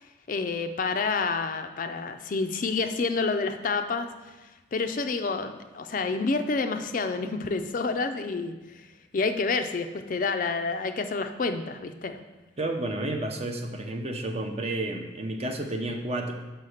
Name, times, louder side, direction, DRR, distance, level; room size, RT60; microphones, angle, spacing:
voice 1, 0.3-4.1 4.7-8.8 9.1-12.2, left 4 dB, 45° left, 7 dB, 0.4 m, -28 dB
voice 2, 12.6-16.3, right 1 dB, 30° right, 4 dB, 0.7 m, -31 dB
5.7 x 5.6 x 6.4 m, 1.2 s
head